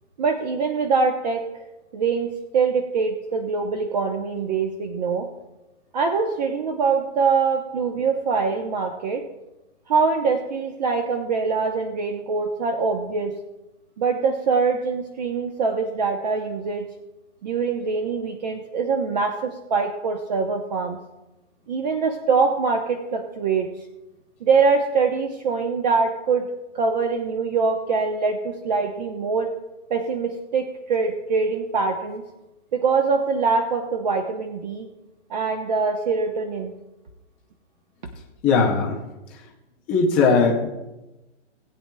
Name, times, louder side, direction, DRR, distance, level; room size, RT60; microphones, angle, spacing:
voice 1, 0.2-1.6 1.9-5.3 5.9-9.3 9.9-13.4 14.0-16.9 17.4-21.0 21.7-23.7 24.4-29.5 29.9-32.2 32.7-34.9 35.3-36.7, right 4 dB, 35° right, 4 dB, 0.9 m, -23 dB
voice 2, 38.4-39.0 39.9-40.7, left 4 dB, 5° left, -2 dB, 0.4 m, -18 dB
19.5 x 8.7 x 2.2 m, 1.0 s
hypercardioid pair, 165°, 36 cm